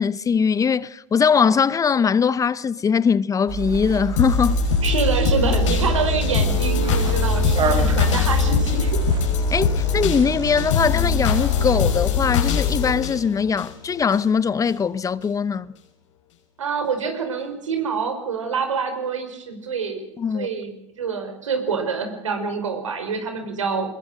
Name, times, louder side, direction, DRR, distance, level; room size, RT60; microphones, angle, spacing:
voice 1, 0.0-4.6 9.5-15.7 20.2-20.5, left 6 dB, 20° left, 0.8 m, -21 dB
sound 1, 3.5-12.1, right 7 dB, 35° right, 7.7 m, -28 dB
sound 2, 4.2-14.2 14.7-14.8, left 8 dB, 80° left, 6.1 m, -22 dB
voice 2, 4.8-9.0 16.6-23.9, right 5 dB, 90° right, 5.1 m, -26 dB
21.5 x 21.5 x 6.4 m
hypercardioid pair, 100°, 16 cm